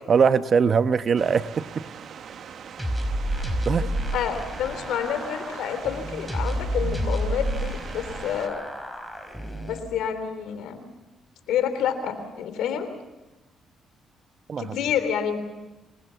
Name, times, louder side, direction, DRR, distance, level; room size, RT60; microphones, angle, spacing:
voice 1, 0.1-1.9 3.6-3.9 14.5-14.7, right 6 dB, 50° right, 1.0 m, -21 dB
sound 1, 1.2-8.5, right 7 dB, 65° right, 1.4 m, -42 dB
sound 2, 2.8-9.8, equal, ahead, 5.1 m, -30 dB
voice 2, 3.8-8.6 9.6-10.8 11.5-12.9 14.6-15.4, left 8 dB, 85° left, 3.4 m, -28 dB
27.0 x 20.5 x 7.0 m
cardioid pair, 90°, 0 cm